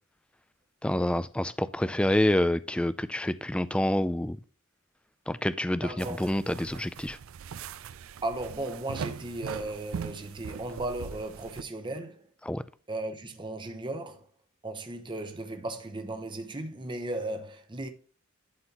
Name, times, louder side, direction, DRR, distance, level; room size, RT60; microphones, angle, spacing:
voice 1, 0.8-4.4 5.3-7.2 12.4-12.6, left 1 dB, 5° left, 0.3 m, -27 dB
voice 2, 5.8-6.3 8.2-12.2 12.9-14.3 14.6-17.9, right 2 dB, 20° right, 0.8 m, -36 dB
sound 1, 6.0-11.6, right 6 dB, 70° right, 0.4 m, -40 dB
11.5 x 4.4 x 2.9 m
head